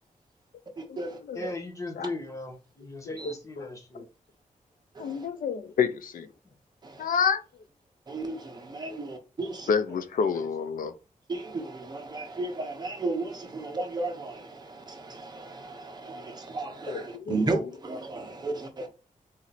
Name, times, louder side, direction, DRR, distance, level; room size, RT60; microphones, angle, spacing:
voice 1, 0.8-1.5 3.2-3.3 4.9-5.3 6.8-7.0 8.1-9.7 11.3-18.9, right 2 dB, 30° right, 1.0 m, -34 dB
voice 2, 1.3-4.1 9.9-10.0 10.3-10.5, left 2 dB, 20° left, 1.2 m, -38 dB
voice 3, 3.0-3.7 5.0-6.3 7.0-7.4 9.7-10.9 16.9-17.3, left 6 dB, 80° left, 0.6 m, -28 dB
4.1 x 3.1 x 4.1 m
wide cardioid pair, 160°, 14 cm